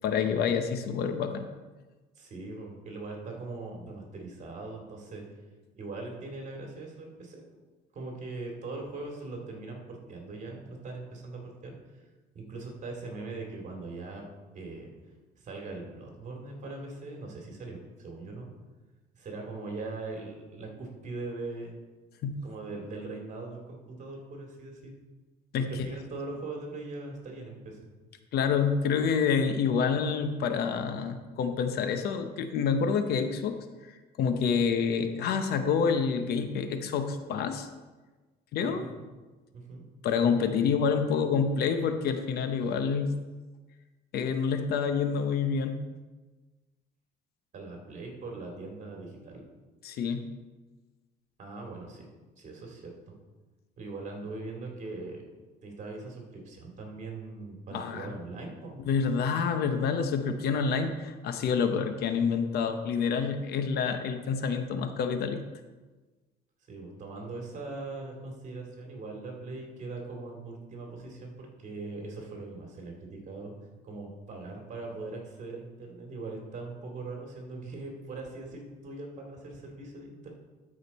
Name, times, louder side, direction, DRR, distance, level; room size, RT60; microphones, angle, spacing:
voice 1, 0.0-1.5 22.2-22.3 25.5-25.7 28.3-33.9 34.2-37.7 38.5-38.8 40.0-43.1 44.1-45.8 49.8-50.3 57.7-58.1 58.9-65.4, left 6 dB, 70° left, 8 dB, 0.8 m, -28 dB
voice 2, 2.2-5.2 5.7-7.4 7.9-11.7 12.3-14.3 14.5-14.9 15.4-18.5 19.1-21.7 22.4-24.9 25.7-27.8 38.7-39.0 39.5-39.8 47.5-49.4 51.4-52.1 52.4-53.1 53.8-55.2 55.6-58.8 66.7-73.5 73.8-80.3, right 3 dB, 45° right, 1 dB, 2.4 m, -41 dB
12.5 x 5.1 x 4.1 m, 1.3 s
cardioid pair, 110°, 17 cm